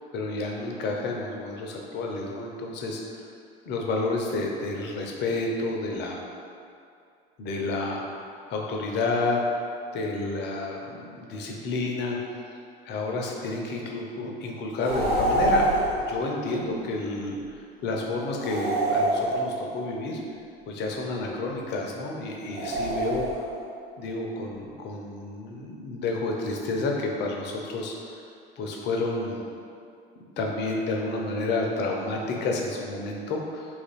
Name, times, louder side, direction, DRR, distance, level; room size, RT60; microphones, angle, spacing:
voice 1, 0.1-3.0 3.7-6.2 7.4-9.6 9.9-12.2 12.8-15.7 16.1-20.2 20.7-23.3 24.0-28.2 28.6-29.4 30.4-33.8, left 2 dB, 40° left, 0 dB, 0.6 m, -30 dB
sound 1, 14.8-16.1 18.4-19.8 22.5-23.6, right 1 dB, 85° right, 0.6 m, -26 dB
2.9 x 2.5 x 4.0 m, 2.4 s
figure-of-eight pair, 70°, 29 cm